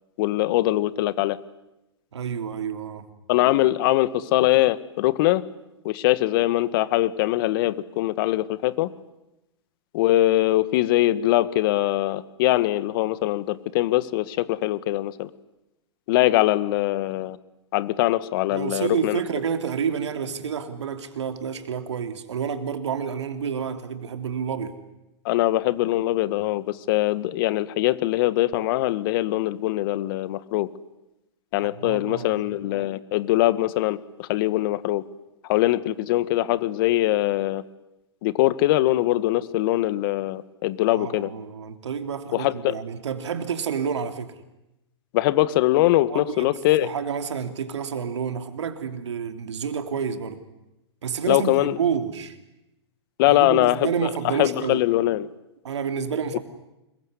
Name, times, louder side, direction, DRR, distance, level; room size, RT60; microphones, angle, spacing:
voice 1, 0.2-1.4 3.3-5.4 5.8-8.9 9.9-15.3 16.1-17.4 17.7-19.2 25.3-30.7 31.5-35.0 35.5-37.6 38.2-41.3 42.3-42.8 45.1-46.9 51.3-51.8 53.2-55.3, left 16 dB, 50° left, 15 dB, 1.7 m, -22 dB
voice 2, 2.1-3.1 18.5-24.8 31.6-32.4 40.9-44.4 46.1-50.4 51.0-52.4 53.3-54.8 55.6-56.4, right 7 dB, 75° right, 8 dB, 3.2 m, -29 dB
26.5 x 22.5 x 9.7 m, 0.94 s
hypercardioid pair, 115°, 15 cm